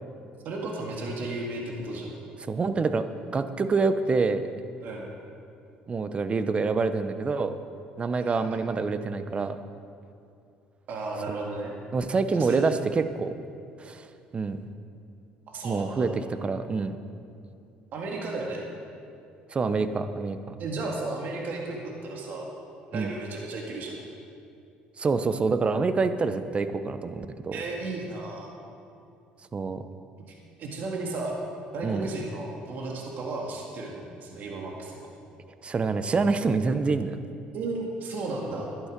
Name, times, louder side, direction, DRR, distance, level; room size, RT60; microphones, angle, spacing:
voice 1, 0.4-2.1 4.8-5.1 8.1-8.6 10.9-11.7 12.3-12.6 15.5-16.1 17.9-18.6 20.6-22.5 22.9-24.0 27.5-28.6 30.3-31.4 31.7-35.1 37.5-38.7, right 2 dB, 60° right, -1 dB, 1.9 m, -34 dB
voice 2, 2.5-3.1 3.3-4.5 5.9-7.6 8.0-9.6 11.9-13.3 13.8-14.1 14.3-14.6 15.6-17.0 19.5-20.5 22.9-23.1 25.0-27.6 29.5-29.8 31.8-32.1 35.6-37.2, right 4 dB, 35° right, 10 dB, 0.8 m, -26 dB
12.0 x 11.0 x 5.2 m, 2.5 s
supercardioid pair, 80°, 3 cm